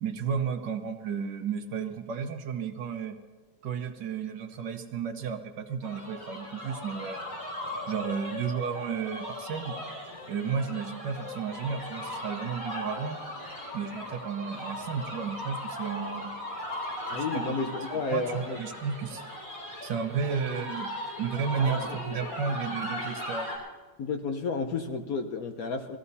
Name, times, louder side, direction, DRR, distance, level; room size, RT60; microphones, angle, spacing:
voice 1, 0.0-3.2 3.6-7.2 7.9-9.8 10.3-13.2 13.7-16.3 17.1-17.5 17.9-19.2 19.8-20.9 21.2-23.5, right 6 dB, 65° right, 7 dB, 1.6 m, -33 dB
sound 1, 5.8-23.6, left 1 dB, 85° left, 5.4 m, -38 dB
voice 2, 17.1-18.6 20.3-20.7 21.6-22.0 24.0-26.0, left 4 dB, 55° left, 5 dB, 1.2 m, -32 dB
21.0 x 14.5 x 4.1 m, 1.3 s
omnidirectional pair, 2.1 m